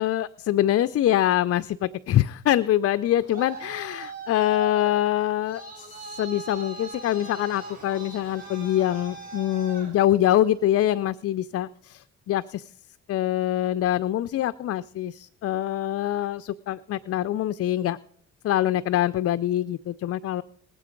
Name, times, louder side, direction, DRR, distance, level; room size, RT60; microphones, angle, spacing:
voice 1, 0.0-12.7 13.1-18.0 18.4-20.4, left 12 dB, 50° left, 13 dB, 0.4 m, -24 dB
Traffic noise roadway noise, 2.9-10.6, right 2 dB, 30° right, 4.6 m, -41 dB
19.5 x 7.6 x 5.1 m, 0.65 s
cardioid pair, 90°, 30 cm